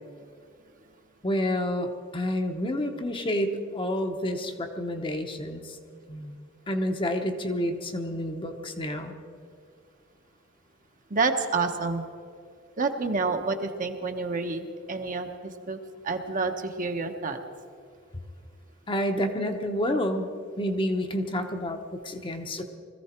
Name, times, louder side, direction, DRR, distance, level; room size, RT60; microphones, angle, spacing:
voice 1, 1.2-5.8 6.1-6.4 6.7-9.1 18.9-20.3 20.6-22.6, equal, 25° left, 5 dB, 0.9 m, -29 dB
voice 2, 11.1-12.0 12.8-17.4, right 4 dB, 40° right, 5 dB, 1.0 m, -28 dB
21.0 x 14.5 x 4.4 m, 2.2 s
head